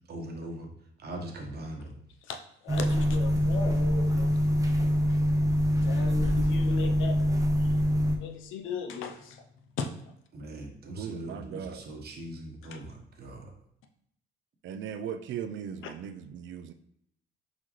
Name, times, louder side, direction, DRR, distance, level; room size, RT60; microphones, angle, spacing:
voice 1, 0.1-0.7 1.0-1.9 10.3-13.5, right 1 dB, 55° right, 1 dB, 1.1 m, -40 dB
voice 2, 2.6-4.4 5.1-5.2 5.8-7.1 7.6-7.7 8.2-9.4 9.8-9.9 12.7-12.8, left 5 dB, 85° left, 5 dB, 0.6 m, -37 dB
sound 1, 2.7-8.2, equal, 15° right, 0.7 m, -25 dB
voice 3, 6.7-7.0 10.9-11.8 14.6-16.7, right 8 dB, 75° right, 9 dB, 0.4 m, -38 dB
4.2 x 3.9 x 3.1 m, 0.72 s
cardioid pair, 90°, 20 cm